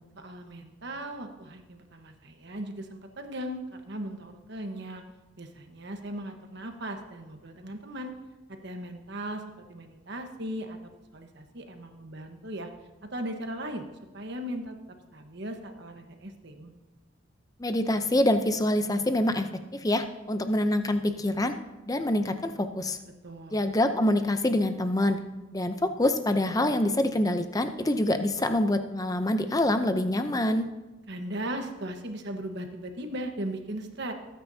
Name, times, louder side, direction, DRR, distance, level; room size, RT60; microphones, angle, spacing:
voice 1, 0.2-5.0 5.4-8.1 8.5-9.4 9.7-12.7 13.0-13.9 14.1-14.8 15.1-16.7 23.2-23.6 31.1-34.1, right 1 dB, 55° right, 5 dB, 1.2 m, -38 dB
voice 2, 17.6-21.6 21.9-23.0 23.5-25.2 25.5-30.7, left 1 dB, 15° left, 8 dB, 0.6 m, -26 dB
20.0 x 9.1 x 2.8 m, 1.1 s
head